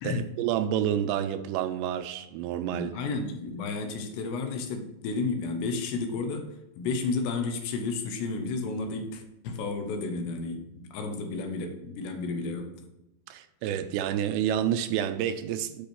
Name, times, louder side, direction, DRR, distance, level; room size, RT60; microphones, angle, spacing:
voice 1, 0.0-2.9 13.3-15.9, right 10 dB, 85° right, 2.8 m, -29 dB
voice 2, 2.5-12.8, left 4 dB, 80° left, 3.1 m, -32 dB
8.5 x 5.4 x 4.5 m
omnidirectional pair, 5.1 m